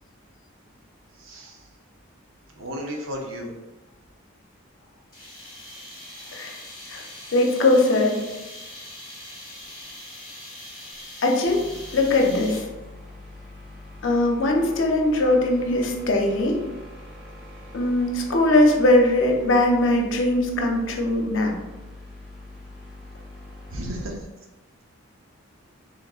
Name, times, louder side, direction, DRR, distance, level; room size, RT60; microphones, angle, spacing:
voice 1, 1.2-1.6 2.6-3.5 23.7-24.3, equal, 70° right, 1 dB, 0.6 m, -33 dB
sound 1, 5.1-12.8, left 1 dB, 20° left, 0.9 m, -42 dB
voice 2, 7.3-8.2 11.2-11.6 11.9-12.7 14.0-16.6 17.7-21.6, left 1 dB, 65° left, 2 dB, 0.6 m, -20 dB
sound 2, 11.5-24.1, left 1 dB, 5° right, 0.7 m, -43 dB
3.5 x 3.2 x 2.4 m, 1.1 s
head